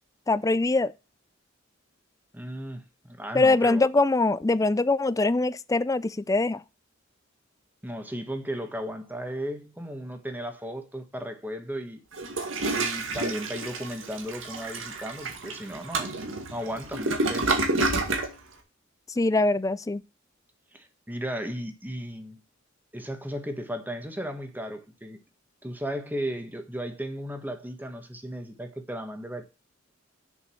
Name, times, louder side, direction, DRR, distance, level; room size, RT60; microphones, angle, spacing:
voice 1, 0.3-0.9 3.3-6.6 19.2-20.0, left 2 dB, 15° left, 0.4 m, -23 dB
voice 2, 2.3-3.8 7.8-12.0 12.6-16.2 16.5-17.6 20.7-22.4 22.9-25.2 25.6-29.4, equal, 10° right, 1.5 m, -35 dB
Toilet flush, 12.1-18.3, right 2 dB, 75° right, 2.2 m, -29 dB
7.3 x 6.6 x 6.3 m
head